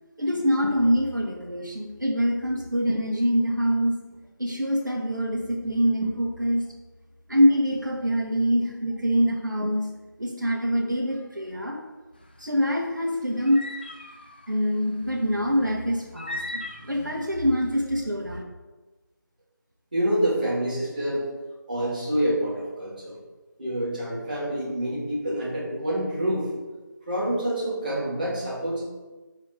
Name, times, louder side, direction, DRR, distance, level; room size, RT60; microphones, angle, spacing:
voice 1, 0.2-4.0 4.4-6.6 7.3-9.9 10.2-11.8 12.4-13.6 14.5-18.4, equal, 65° right, -1 dB, 2.3 m, -24 dB
sound 1, 12.2-17.6, left 2 dB, 30° left, 0.6 m, -38 dB
voice 2, 19.9-21.3 21.7-23.2 23.6-26.5 27.1-28.8, right 1 dB, 25° right, -8 dB, 2.9 m, -27 dB
9.1 x 3.7 x 6.5 m, 1.2 s
figure-of-eight pair, 170°, 11 cm